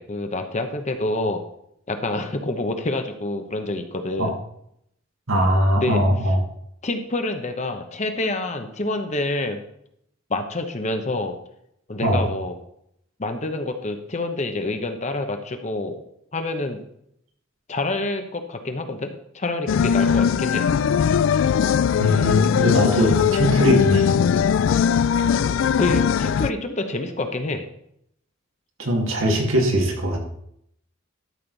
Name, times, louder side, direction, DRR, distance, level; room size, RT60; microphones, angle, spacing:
voice 1, 0.0-1.4 1.9-4.3 5.8-6.0 6.8-9.6 10.3-11.3 11.9-12.5 13.2-16.0 16.3-16.8 17.7-20.7 25.8-27.6, left 2 dB, 35° left, 6 dB, 0.9 m, -27 dB
voice 2, 5.3-6.4 12.0-12.2 22.0-24.2 28.8-30.2, equal, 80° right, 1 dB, 2.2 m, -20 dB
sound 1, 19.7-26.5, left 7 dB, 65° left, 0.3 m, -20 dB
12.5 x 6.5 x 4.0 m, 0.73 s
head